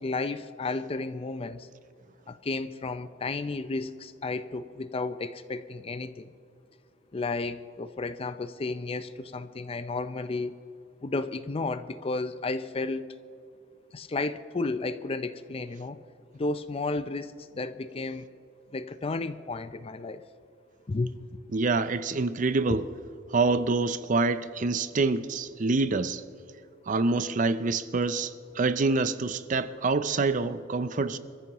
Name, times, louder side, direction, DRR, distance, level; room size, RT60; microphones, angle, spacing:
voice 1, 0.0-1.7 2.3-6.3 7.1-10.5 11.0-13.1 13.9-16.0 16.3-18.2 18.7-20.2 20.9-21.1, left 3 dB, 30° left, 0.5 m, -32 dB
voice 2, 21.5-22.9 23.3-26.2 26.9-31.2, right 3 dB, 40° right, 0.5 m, -26 dB
26.5 x 14.0 x 3.0 m
head